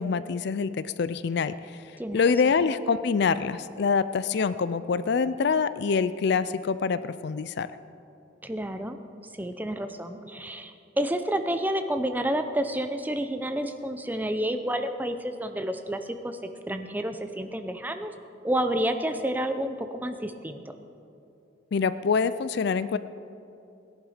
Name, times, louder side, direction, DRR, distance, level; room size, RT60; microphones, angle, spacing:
voice 1, 0.0-1.8 2.1-7.7 21.7-23.0, left 5 dB, 60° left, 14 dB, 0.4 m, -25 dB
voice 2, 8.4-9.0 9.4-18.1 18.4-20.6, right 1 dB, 10° right, 8 dB, 0.6 m, -30 dB
18.0 x 11.0 x 5.0 m, 2.7 s
head